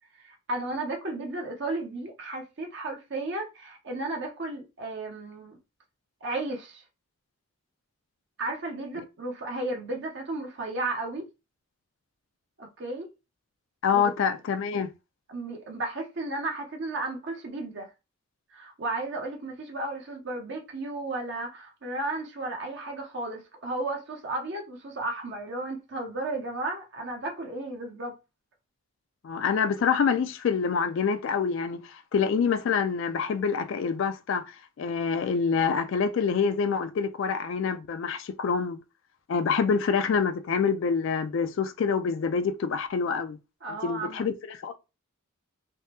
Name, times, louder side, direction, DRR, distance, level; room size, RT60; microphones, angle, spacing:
voice 1, 0.2-5.6 6.2-6.8 8.4-11.3 12.6-13.1 13.9-14.1 15.3-17.9 18.5-28.2 43.6-44.3, right 2 dB, 50° right, 0.6 m, -34 dB
voice 2, 13.8-14.9 29.2-38.8 39.3-43.4 43.8-44.8, left 6 dB, 60° left, 0.3 m, -26 dB
3.4 x 2.0 x 2.8 m
head